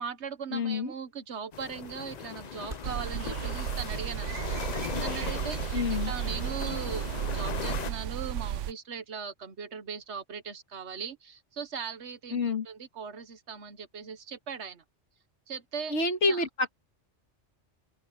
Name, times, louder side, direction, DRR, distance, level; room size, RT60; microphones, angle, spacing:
voice 1, 0.0-14.8 15.5-16.0 16.3-16.4, right 6 dB, 70° right, 1.4 m, -39 dB
voice 2, 0.5-0.9 5.7-6.1 12.3-12.7 15.9-16.7, left 3 dB, 70° left, 2.2 m, -28 dB
sound 1, 1.5-7.9, left 8 dB, 50° left, 0.5 m, -38 dB
sound 2, 1.8-6.7, right 1 dB, 45° right, 5.4 m, -52 dB
sound 3, 2.8-8.7, right 11 dB, 85° right, 1.0 m, -34 dB
open air
omnidirectional pair, 1.2 m